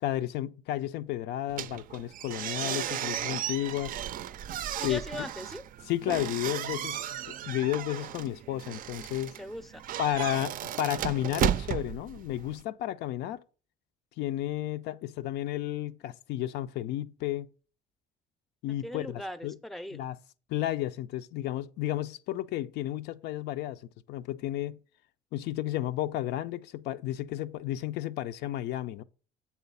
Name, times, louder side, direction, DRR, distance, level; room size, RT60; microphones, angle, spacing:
voice 1, 0.0-4.0 4.8-5.0 5.9-9.3 10.0-13.4 14.2-17.5 18.6-19.6 19.9-20.2 20.5-23.8 24.1-24.8 25.3-29.0, left 13 dB, 80° left, 0.4 m, -32 dB
sound 1, 1.5-12.6, right 11 dB, 55° right, 0.4 m, -35 dB
voice 2, 4.8-5.6 9.3-9.8 18.8-20.1, left 1 dB, ahead, 0.5 m, -40 dB
7.2 x 3.9 x 5.4 m
cardioid pair, 110°, 17 cm